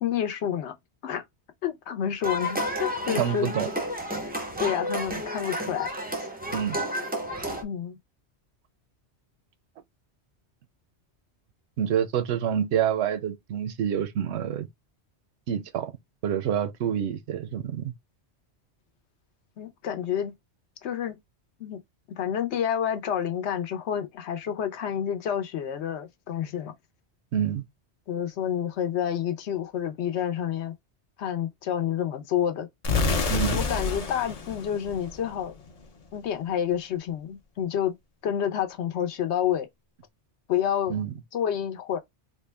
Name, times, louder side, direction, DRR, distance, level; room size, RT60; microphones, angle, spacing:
voice 1, 0.0-0.7 1.0-1.2 1.6-3.5 4.6-5.9 6.2-6.3 7.6-8.0 19.6-20.3 20.8-21.2 21.6-21.8 22.2-26.7 28.1-30.7 31.2-32.7 33.5-35.5 36.1-37.9 38.2-39.7 40.5-40.9 41.3-42.0, left 9 dB, 75° left, 1.0 m, -29 dB
sound 1, 2.2-7.6, equal, 10° right, 0.5 m, -31 dB
voice 2, 3.2-3.7 6.5-6.8 11.8-14.7 15.5-15.9 16.2-17.9 27.3-27.6 33.3-33.6 40.9-41.1, right 9 dB, 75° right, 0.8 m, -27 dB
sound 2, 32.8-35.7, left 4 dB, 40° left, 0.6 m, -28 dB
3.5 x 2.2 x 3.3 m
omnidirectional pair, 1.2 m